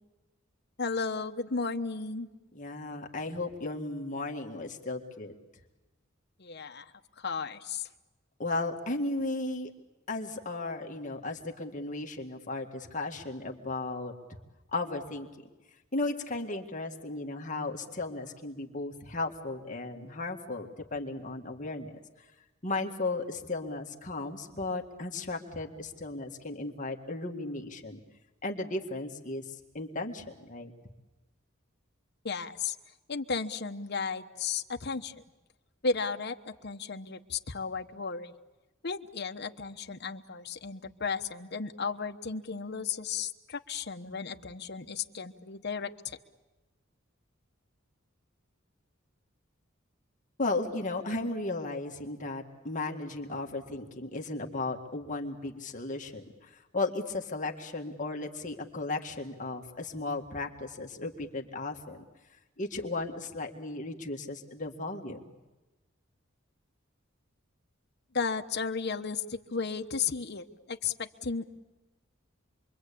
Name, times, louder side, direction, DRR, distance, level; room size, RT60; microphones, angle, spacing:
voice 1, 0.8-2.3 6.4-6.9 7.2-7.9 32.2-32.7 33.1-35.1 35.8-38.3 38.8-46.2 68.1-71.4, left 5 dB, 55° left, 6 dB, 1.1 m, -34 dB
voice 2, 2.5-5.3 8.4-9.7 10.1-14.4 14.7-15.3 15.9-22.3 22.6-28.0 28.4-30.7 50.4-62.0 62.6-65.2, left 2 dB, 40° left, 2 dB, 1.9 m, -35 dB
27.5 x 23.0 x 8.6 m, 1.1 s
head